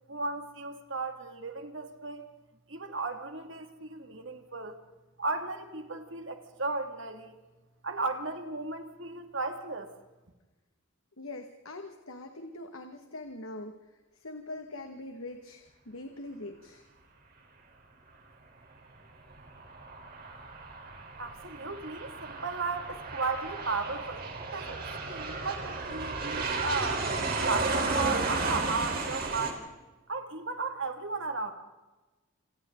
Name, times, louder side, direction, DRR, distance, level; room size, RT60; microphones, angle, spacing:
voice 1, 0.1-2.3 2.7-4.8 5.2-7.4 7.8-9.9 21.2-27.0 27.4-29.7 30.1-31.5, right 3 dB, 65° right, 5 dB, 2.6 m, -35 dB
voice 2, 11.2-13.8 14.1-16.9, left 2 dB, 80° left, 5 dB, 2.1 m, -43 dB
Aircraft, 19.3-29.5, right 3 dB, 45° right, 4.4 m, -33 dB
29.0 x 27.5 x 4.0 m, 1.1 s
head